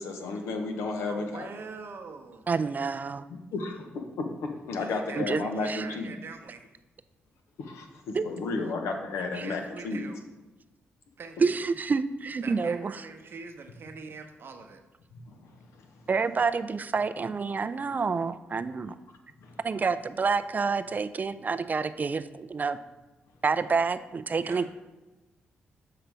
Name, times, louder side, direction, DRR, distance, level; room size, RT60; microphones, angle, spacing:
voice 1, 0.0-1.5 3.3-6.2 7.6-10.1 15.1-16.1 18.8-18.9 19.4-19.8, left 3 dB, 85° left, 4 dB, 0.8 m, -34 dB
voice 2, 1.1-2.5 4.7-6.7 9.4-10.2 11.2-11.6 12.4-14.8 24.4-24.7, right 4 dB, 60° right, 5 dB, 0.8 m, -43 dB
voice 3, 2.5-3.2 5.2-5.4 5.7-5.8 8.1-8.3 11.4-12.9 16.1-19.0 19.6-22.8 23.4-24.7, right 5 dB, 40° right, 12 dB, 0.3 m, -28 dB
6.7 x 3.9 x 4.5 m, 1.1 s
supercardioid pair, 60°, 4 cm